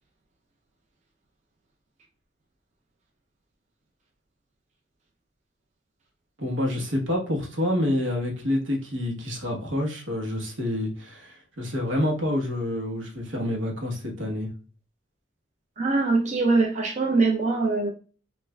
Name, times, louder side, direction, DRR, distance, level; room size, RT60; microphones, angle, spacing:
voice 1, 6.4-14.5, left 1 dB, 80° right, 1 dB, 1.1 m, -28 dB
voice 2, 15.8-17.9, right 3 dB, 40° right, 0 dB, 0.5 m, -22 dB
5.6 x 2.4 x 2.2 m, 0.38 s
head